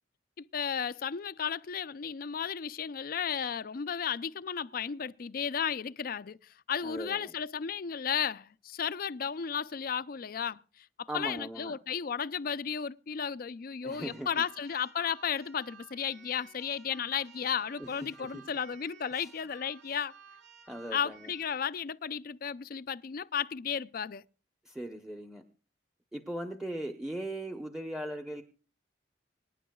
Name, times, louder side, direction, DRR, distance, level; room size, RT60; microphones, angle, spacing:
voice 1, 0.4-20.1 20.9-24.2, left 7 dB, 50° left, 0.4 m, -34 dB
voice 2, 6.8-7.3 11.1-11.7 13.8-14.3 17.8-18.5 19.1-19.3 20.7-21.3 24.6-25.4 26.1-28.4, right 1 dB, 5° right, 0.8 m, -39 dB
Keyboard (musical), 13.9-21.7, right 6 dB, 75° right, 3.1 m, -55 dB
25.0 x 10.0 x 2.3 m
head